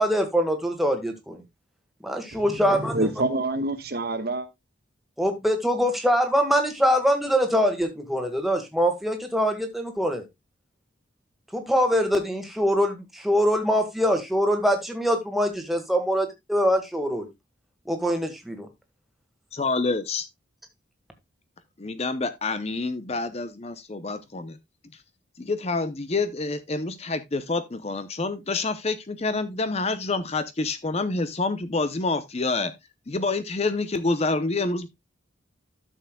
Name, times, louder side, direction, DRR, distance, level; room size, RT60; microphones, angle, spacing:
voice 1, 0.0-1.4 2.0-3.0 5.2-10.3 11.5-17.3 17.8-18.7, equal, ahead, 1.7 m, -23 dB
voice 2, 2.3-4.5, right 2 dB, 50° right, 1.2 m, -27 dB
voice 3, 19.5-20.3 21.8-24.6 25.4-32.7 33.1-34.9, left 3 dB, 30° left, 0.6 m, -27 dB
12.5 x 6.8 x 2.2 m
head